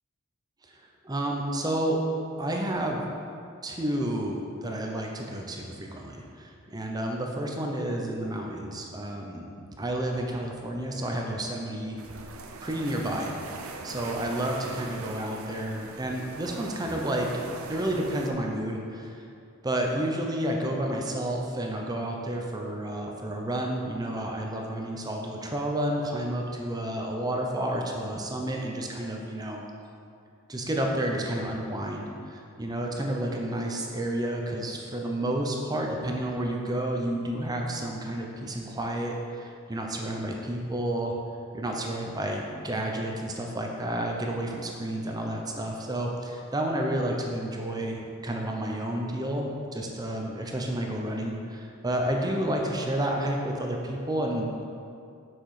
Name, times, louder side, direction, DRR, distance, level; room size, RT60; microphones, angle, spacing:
voice 1, 1.0-2.0 2.4-3.1 3.6-9.5 9.8-12.0 12.6-13.3 13.8-17.3 17.7-19.2 19.6-29.6 30.5-41.1 41.5-54.6, right 1 dB, 20° right, 0 dB, 0.6 m, -30 dB
sound 1, 12.0-18.3, right 3 dB, 80° right, 0.7 m, -41 dB
6.6 x 6.0 x 4.8 m, 2.5 s
head